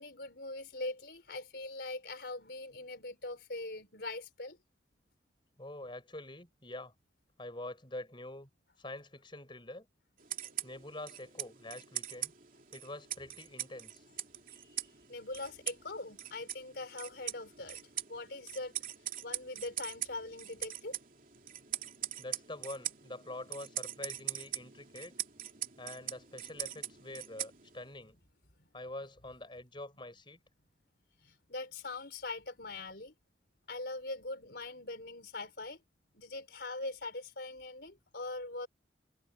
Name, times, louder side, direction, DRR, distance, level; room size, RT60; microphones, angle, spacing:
voice 1, 0.0-4.6 14.5-14.8 15.1-17.8 18.1-18.7 19.2-21.0 31.2-33.1 33.7-35.8 36.2-38.7, left 2 dB, 65° left, 4.3 m, -42 dB
voice 2, 5.6-6.9 7.4-8.5 8.8-9.9 10.6-12.3 12.7-14.0 22.2-25.1 25.8-28.2 28.7-30.4, left 1 dB, 25° left, 6.8 m, -45 dB
sound 1, 10.2-28.0, right 11 dB, 50° right, 3.1 m, -42 dB
head